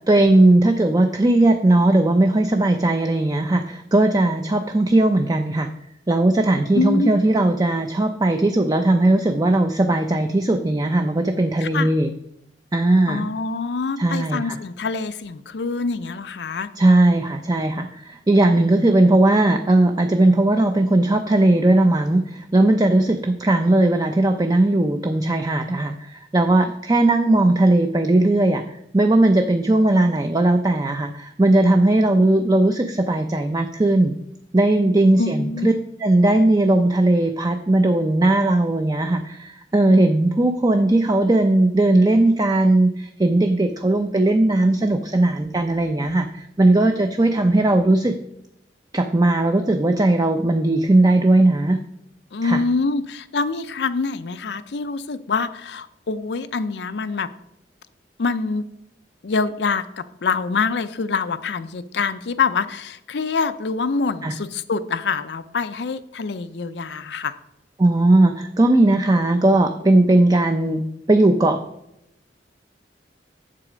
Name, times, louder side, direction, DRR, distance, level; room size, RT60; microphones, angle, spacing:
voice 1, 0.1-5.7 6.1-12.1 12.7-13.3 14.0-14.6 16.8-28.6 28.9-34.1 34.5-35.7 36.0-48.1 48.9-51.8 52.4-52.6 64.2-64.3 67.8-71.6, right 2 dB, 20° right, 6 dB, 0.5 m, -18 dB
voice 2, 6.7-7.2 11.6-11.9 13.1-16.7 35.2-35.7 52.3-57.3 58.2-58.6 59.2-67.4, left 4 dB, 70° left, 13 dB, 0.5 m, -25 dB
7.6 x 7.3 x 5.0 m, 0.81 s
head